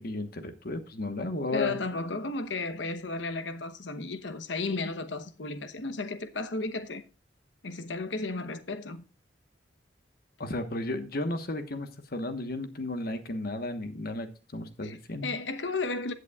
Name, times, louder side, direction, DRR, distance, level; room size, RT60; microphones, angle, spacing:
voice 1, 0.0-1.7 10.4-14.3 14.5-15.4, left 2 dB, 55° left, 1.2 m, -33 dB
voice 2, 1.5-7.0 7.6-9.0 14.8-15.0 15.2-16.1, left 3 dB, 75° left, 0.9 m, -33 dB
15.5 x 8.2 x 2.4 m
head